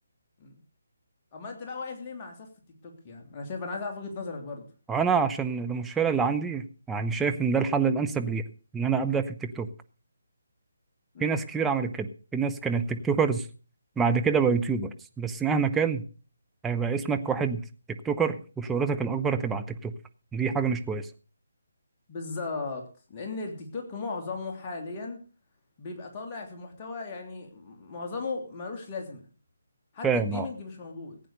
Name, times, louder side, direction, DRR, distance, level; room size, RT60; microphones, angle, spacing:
voice 1, 1.3-2.5 2.8-4.7 11.1-11.4 22.1-25.2 25.8-29.2 29.9-31.2, left 3 dB, 25° left, 2 dB, 3.0 m, -37 dB
voice 2, 4.9-8.4 8.7-9.7 11.2-13.4 14.0-14.9 15.2-16.0 16.6-17.6 18.0-19.9 20.3-21.1 30.0-30.5, right 5 dB, 5° right, 6 dB, 0.9 m, -26 dB
15.5 x 9.2 x 6.7 m, 0.38 s
figure-of-eight pair, 145°, 0 cm